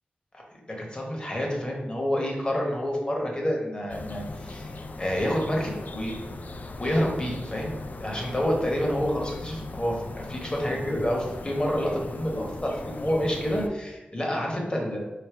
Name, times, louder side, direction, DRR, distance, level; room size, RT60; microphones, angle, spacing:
voice 1, 0.3-6.5 6.8-7.7 8.0-15.0, equal, 25° left, -1 dB, 1.0 m, -28 dB
sound 1, 3.9-13.7, left 2 dB, 55° left, 0.3 m, -39 dB
4.9 x 2.2 x 4.5 m, 1.0 s
wide cardioid pair, 110°, 3 cm